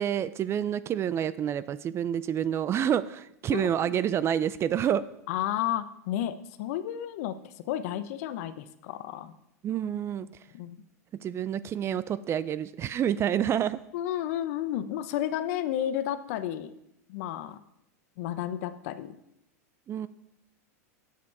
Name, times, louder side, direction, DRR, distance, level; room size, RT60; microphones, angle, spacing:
voice 1, 0.0-5.1 9.6-10.3 11.2-13.8 19.9-20.1, right 9 dB, 30° right, 16 dB, 0.4 m, -28 dB
voice 2, 3.5-4.0 5.3-7.3 7.7-9.3 10.5-10.9 13.9-16.7 17.1-17.6 18.2-19.2, left 11 dB, 65° left, 12 dB, 0.7 m, -32 dB
8.4 x 7.5 x 4.7 m, 0.82 s
hypercardioid pair, 105°, 9 cm